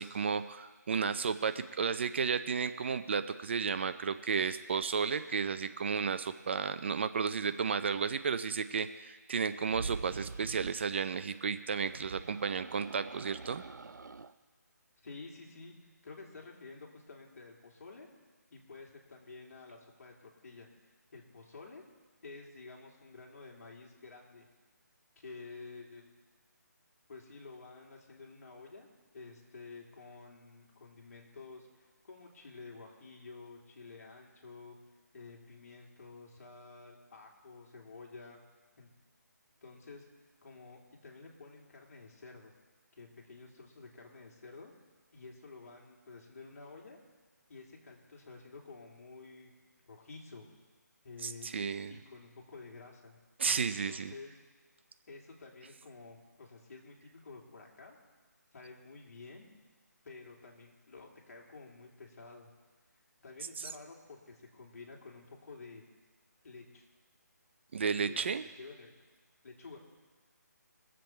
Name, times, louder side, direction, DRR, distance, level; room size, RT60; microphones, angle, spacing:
voice 1, 0.0-13.6 51.2-51.9 53.4-54.1 67.7-68.4, right 6 dB, 40° right, 11 dB, 0.5 m, -33 dB
sound 1, 9.6-10.8 11.7-14.3, right 4 dB, 85° right, 0.6 m, -44 dB
voice 2, 15.0-15.7 16.0-18.1 18.5-21.8 22.2-24.5 25.2-26.0 27.1-28.9 29.1-34.8 35.1-38.4 38.8-38.9 39.6-40.0 40.4-42.5 42.9-44.7 45.1-47.0 47.5-49.5 49.9-50.5 51.0-51.5 51.9-53.2 53.7-54.4 55.1-58.0 58.5-59.5 60.0-62.5 63.2-65.8 66.4-66.9 67.8-68.9 69.4-69.8, left 4 dB, 55° left, -1 dB, 3.0 m, -51 dB
22.5 x 7.6 x 4.5 m, 1.3 s
figure-of-eight pair, 160°, 10 cm